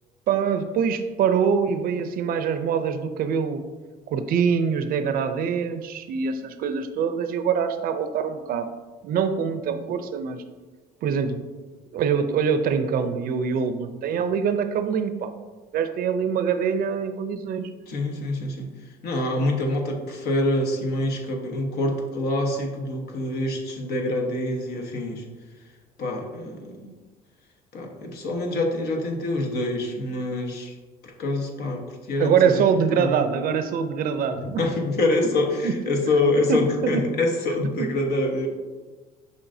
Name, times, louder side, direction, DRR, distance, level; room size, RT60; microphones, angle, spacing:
voice 1, 0.3-3.6 4.1-8.7 9.0-10.4 11.0-11.4 11.9-15.3 15.7-17.7 32.2-34.7 35.6-35.7 36.5-37.0 37.8-37.9, right 6 dB, 60° right, 9 dB, 0.5 m, -24 dB
voice 2, 17.9-18.7 19.0-25.2 26.0-26.9 27.7-30.7 31.0-32.6 32.9-33.2 34.3-38.5, left 2 dB, 75° left, 2 dB, 1.2 m, -26 dB
7.0 x 5.3 x 2.7 m, 1.3 s
cardioid pair, 110°, 17 cm